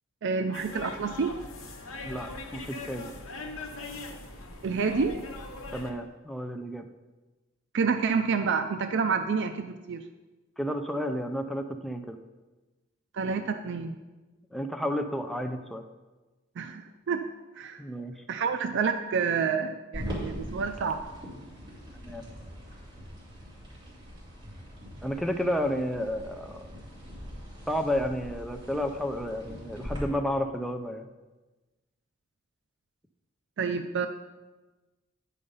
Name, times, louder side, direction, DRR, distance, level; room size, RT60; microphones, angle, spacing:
voice 1, 0.2-1.3 4.6-5.2 7.7-10.0 13.1-14.0 16.6-17.2 17.6-17.8 18.3-21.0 33.6-34.1, right 5 dB, 60° right, 8 dB, 0.4 m, -28 dB
sound 1, 0.5-5.9, left 3 dB, 85° left, 1.0 m, -41 dB
voice 2, 2.1-3.1 5.7-6.9 10.6-12.2 14.5-15.8 17.8-18.2 22.0-22.2 25.0-26.7 27.7-31.1, equal, ahead, 5 dB, 0.4 m, -31 dB
sound 2, 19.9-30.0, equal, 20° right, 3.2 m, -42 dB
9.8 x 5.1 x 5.4 m, 1.2 s
head